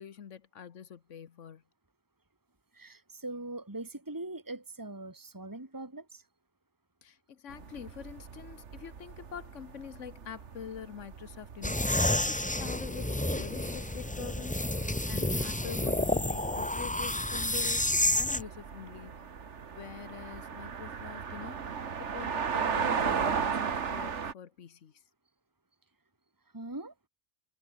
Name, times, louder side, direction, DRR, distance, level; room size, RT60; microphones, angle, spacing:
voice 1, 0.0-1.6 7.0-17.9 18.1-19.3 19.7-24.9, left 8 dB, 75° left, 1.4 m, -45 dB
voice 2, 2.7-6.2 26.5-26.9, right 2 dB, 15° right, 2.5 m, -41 dB
sound 1, 7.5-24.3, right 6 dB, 70° right, 1.7 m, -37 dB
sound 2, 11.6-18.4, left 1 dB, 10° left, 0.7 m, -30 dB
omnidirectional pair, 1.3 m